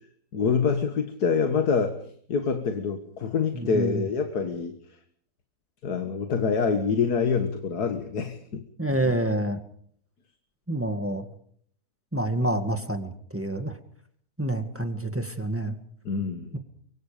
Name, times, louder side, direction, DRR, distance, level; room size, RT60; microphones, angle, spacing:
voice 1, 0.3-2.0 2.3-4.7 5.8-8.6 16.1-16.6, left 5 dB, 90° left, 7 dB, 2.2 m, -26 dB
voice 2, 3.5-4.0 8.8-9.6 10.7-11.3 12.1-13.8 14.4-15.8 16.5-16.6, right 1 dB, 10° right, 7 dB, 1.9 m, -28 dB
24.5 x 24.0 x 5.2 m, 0.62 s
omnidirectional pair, 1.6 m